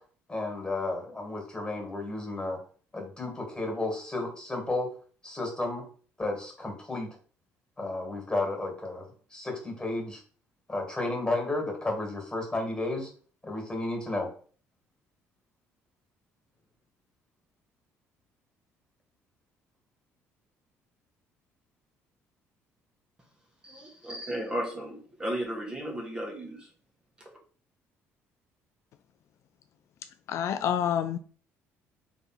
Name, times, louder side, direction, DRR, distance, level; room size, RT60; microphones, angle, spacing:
voice 1, 0.3-2.6 2.9-4.9 5.2-5.8 6.2-7.1 7.8-9.1 9.3-10.2 10.7-13.1 13.4-14.3, left 2 dB, 15° left, 2.2 m, -32 dB
voice 2, 23.6-26.7, right 1 dB, 15° right, 1.4 m, -34 dB
voice 3, 30.3-31.2, left 9 dB, 60° left, 0.3 m, -27 dB
3.5 x 3.5 x 4.4 m
cardioid pair, 110°, 5 cm